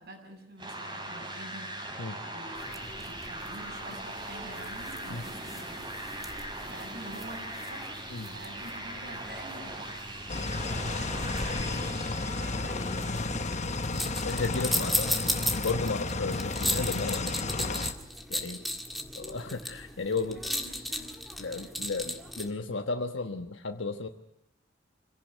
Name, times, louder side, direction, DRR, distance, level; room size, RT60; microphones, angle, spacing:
voice 1, 0.0-5.8 6.4-7.9 8.2-10.2 10.7-13.4 20.3-21.8, right 1 dB, 55° right, 2 dB, 7.0 m, -48 dB
sound 1, 0.6-14.3, right 1 dB, 25° right, 5.0 m, -40 dB
sound 2, 2.6-22.5, left 1 dB, ahead, 1.8 m, -37 dB
sound 3, 10.3-17.9, left 3 dB, 35° left, 1.1 m, -32 dB
voice 2, 14.2-15.2 15.6-17.8 18.3-18.6 19.1-20.4 21.4-24.1, left 3 dB, 70° left, 5 dB, 1.2 m, -34 dB
26.0 x 17.0 x 9.2 m, 0.78 s
head